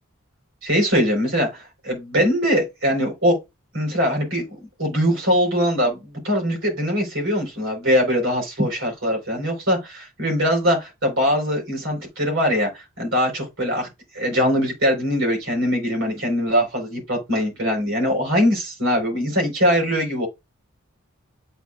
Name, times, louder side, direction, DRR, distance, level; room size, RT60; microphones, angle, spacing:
voice 1, 0.6-3.4 3.7-6.0 6.2-13.9 14.1-20.3, equal, 60° right, 4.2 m, -22 dB
8.2 x 6.2 x 2.4 m
head